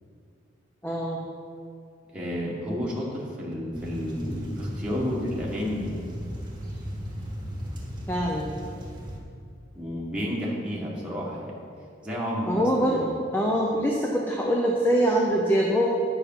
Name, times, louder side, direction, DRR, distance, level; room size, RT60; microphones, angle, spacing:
voice 1, 0.8-1.2 8.1-8.6 12.4-13.0 13.3-15.9, equal, 10° left, -2 dB, 0.7 m, -24 dB
voice 2, 2.1-5.9 9.7-11.6 12.0-13.1, equal, 5° right, -6 dB, 1.6 m, -31 dB
sound 1, 3.7-9.2, equal, 25° right, 1.5 m, -36 dB
9.5 x 5.8 x 5.5 m, 2.4 s
head